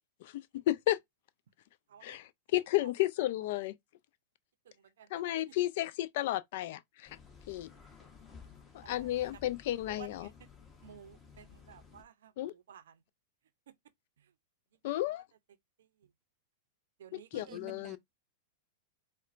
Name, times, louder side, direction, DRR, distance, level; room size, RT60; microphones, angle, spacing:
voice 1, 0.2-1.0 2.0-3.7 5.1-7.2 7.5-7.7 8.7-10.3 12.4-12.5 14.8-15.2 17.1-18.0, left 15 dB, 60° left, 0.4 m, -33 dB
voice 2, 5.0-5.4 8.8-9.4 9.9-10.3 10.8-13.0 13.7-13.8 14.9-15.0 17.0-17.6, right 9 dB, 80° right, 0.5 m, -54 dB
sound 1, 7.1-12.0, left 5 dB, 15° left, 1.0 m, -55 dB
voice 3, 17.3-18.0, right 6 dB, 25° right, 0.6 m, -51 dB
4.2 x 2.1 x 2.4 m
hypercardioid pair, 130°, 0 cm